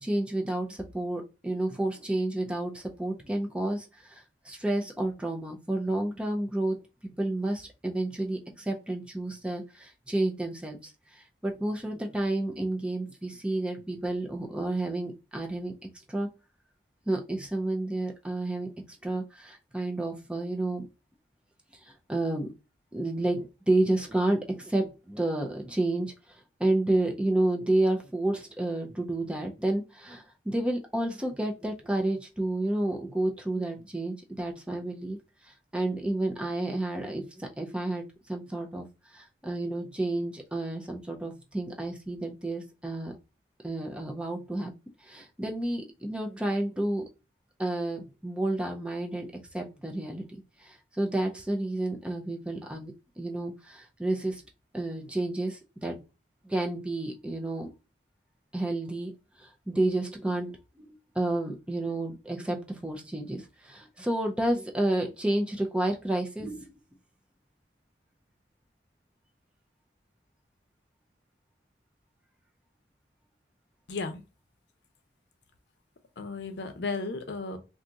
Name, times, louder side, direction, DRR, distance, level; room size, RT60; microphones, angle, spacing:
voice 1, 0.0-6.8 7.2-15.7 16.1-16.3 17.1-20.8 21.7-22.5 22.9-35.2 35.4-43.1 43.6-44.7 45.0-47.0 47.6-49.3 49.5-50.3 50.6-54.4 54.7-56.0 56.4-57.7 58.5-59.1 59.4-66.7, right 1 dB, 5° right, 0.4 m, -30 dB
voice 2, 73.9-74.2 76.2-77.6, left 3 dB, 70° left, 0.6 m, -34 dB
2.5 x 2.4 x 3.8 m
head